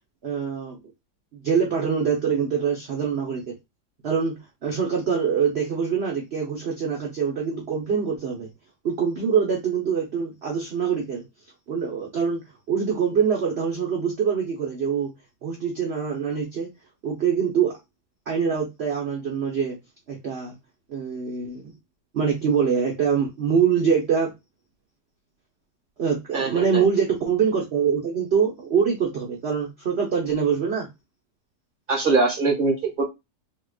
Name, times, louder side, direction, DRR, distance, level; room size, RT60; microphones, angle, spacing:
voice 1, 0.2-0.8 1.3-3.6 4.0-8.5 8.8-11.2 11.7-15.1 15.4-16.7 17.0-17.8 18.3-19.8 20.1-20.5 20.9-21.7 22.1-24.3 26.0-30.9, right 6 dB, 50° right, 0.8 m, -24 dB
voice 2, 26.3-26.9 31.9-33.0, right 3 dB, 35° right, 1.3 m, -22 dB
3.6 x 2.9 x 2.3 m
omnidirectional pair, 1.7 m